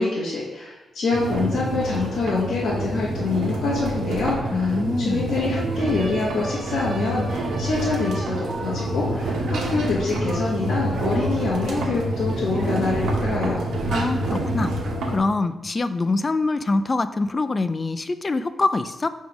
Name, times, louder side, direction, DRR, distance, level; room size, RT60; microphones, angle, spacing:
voice 1, 0.0-13.6, left 3 dB, 70° left, -7 dB, 1.3 m, -25 dB
sound 1, 1.1-15.2, right 1 dB, 85° right, 1.1 m, -27 dB
voice 2, 4.5-5.3 13.9-14.7 15.1-19.1, left 3 dB, 30° left, 12 dB, 0.4 m, -24 dB
sound 2, 5.7-14.5, right 2 dB, 60° right, 1.4 m, -36 dB
6.0 x 3.6 x 4.8 m, 1.1 s
cardioid pair, 85°, 0 cm